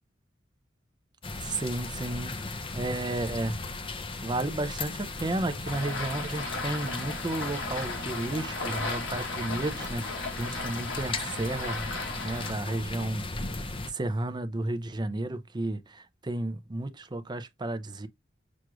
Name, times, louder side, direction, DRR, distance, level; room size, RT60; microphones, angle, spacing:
sound 1, 1.2-13.9, left 3 dB, 25° left, 0.5 m, -37 dB
voice 1, 1.4-3.6 3.9-11.9 12.2-13.3 13.5-18.1, right 2 dB, 25° right, 0.5 m, -33 dB
sound 2, 5.7-12.5, left 3 dB, 75° left, 1.5 m, -36 dB
6.2 x 2.4 x 2.9 m
head